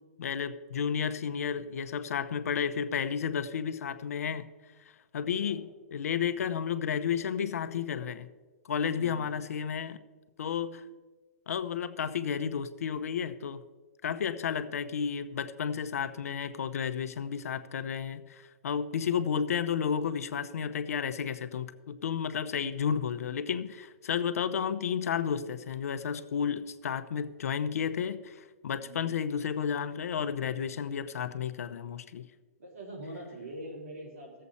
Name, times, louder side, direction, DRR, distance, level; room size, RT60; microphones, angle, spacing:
voice 1, 0.2-4.5 5.1-8.3 8.7-10.0 10.4-10.8 11.5-13.6 14.0-32.3, left 7 dB, 85° left, 11 dB, 0.7 m, -32 dB
voice 2, 8.9-9.4 28.8-29.2 32.6-34.5, right 1 dB, 85° right, -2 dB, 3.7 m, -44 dB
16.0 x 7.5 x 4.2 m, 1.3 s
hypercardioid pair, 180°, 8 cm